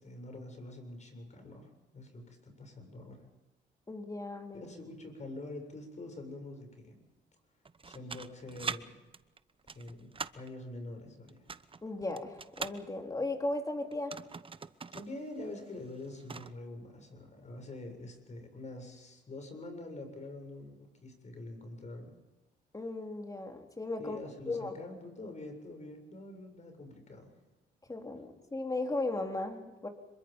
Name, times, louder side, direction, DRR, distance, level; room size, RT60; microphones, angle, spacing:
voice 1, 0.0-3.3 4.5-7.0 7.8-9.0 9.7-10.1 10.3-11.5 14.9-22.1 24.0-27.3, left 2 dB, 35° left, 5 dB, 7.4 m, -45 dB
voice 2, 3.9-4.7 11.8-14.2 22.7-24.2 24.5-24.8 27.9-29.9, left 2 dB, 15° left, 3 dB, 3.5 m, -36 dB
sound 1, 7.6-8.8 9.1-10.5 11.3-12.8 13.9-15.1 15.4-15.5 15.9-16.5, right 5 dB, 25° right, 0.9 m, -41 dB
26.5 x 23.0 x 5.5 m, 1.1 s
cardioid pair, 90°, 20 cm